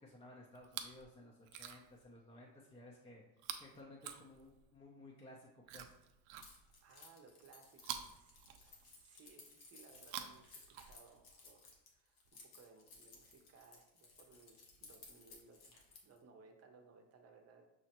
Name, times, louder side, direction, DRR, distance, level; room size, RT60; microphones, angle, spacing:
voice 1, 0.0-3.2 3.6-5.9, left 1 dB, 15° left, -2 dB, 0.5 m, -57 dB
Chewing mastication, 0.6-1.1 1.4-2.0 3.4-4.8 5.6-6.9 7.8-9.1 9.9-11.3 12.3-12.4, right 9 dB, 85° right, 0.5 m, -49 dB
Keys jangling, 6.4-16.2, left 4 dB, 90° left, 1.1 m, -60 dB
voice 2, 6.8-17.6, right 4 dB, 35° right, 4 dB, 0.7 m, -63 dB
6.1 x 2.1 x 2.9 m, 0.85 s
supercardioid pair, 100°, 43 cm